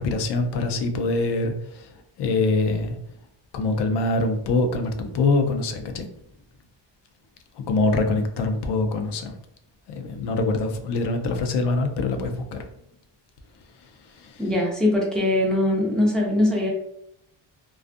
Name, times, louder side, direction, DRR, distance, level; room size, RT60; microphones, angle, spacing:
voice 1, 0.0-1.9 2.2-3.0 3.5-6.1 7.7-9.3 9.9-12.6 14.2-14.4, left 3 dB, 65° left, 6 dB, 0.5 m, -24 dB
voice 2, 14.4-16.7, left 1 dB, ahead, -3 dB, 0.4 m, -21 dB
2.5 x 2.3 x 2.4 m, 0.74 s
cardioid pair, 155°, 46 cm